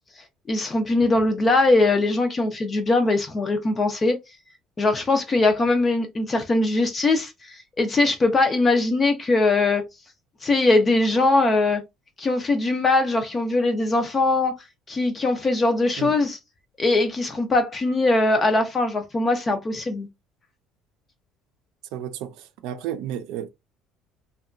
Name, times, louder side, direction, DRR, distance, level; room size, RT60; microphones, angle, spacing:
voice 1, 0.5-4.2 4.8-9.8 10.4-11.8 12.2-14.5 14.9-16.4 16.8-20.1, left 2 dB, 20° left, 0.4 m, -21 dB
voice 2, 21.9-23.5, right 10 dB, 70° right, 0.4 m, -32 dB
2.8 x 2.2 x 2.4 m
cardioid pair, 165°, 0 cm